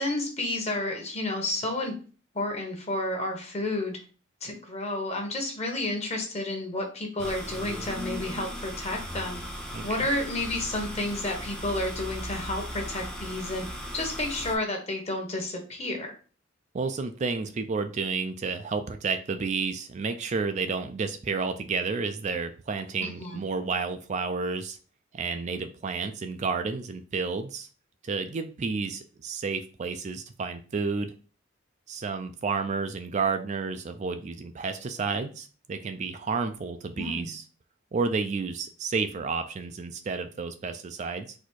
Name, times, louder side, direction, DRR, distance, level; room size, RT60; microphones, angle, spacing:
voice 1, 0.0-1.9 2.3-4.0 4.4-9.4 9.8-13.7 13.9-16.1 23.0-23.4 37.0-37.3, left 1 dB, 35° left, 2 dB, 1.1 m, -31 dB
sound 1, 7.2-14.5, equal, 5° left, 0.7 m, -37 dB
voice 2, 9.7-10.1 16.7-24.8 25.1-27.7 28.0-31.1 31.9-37.4 37.9-41.3, right 4 dB, 35° right, 7 dB, 0.4 m, -31 dB
4.1 x 2.7 x 4.5 m, 0.38 s
head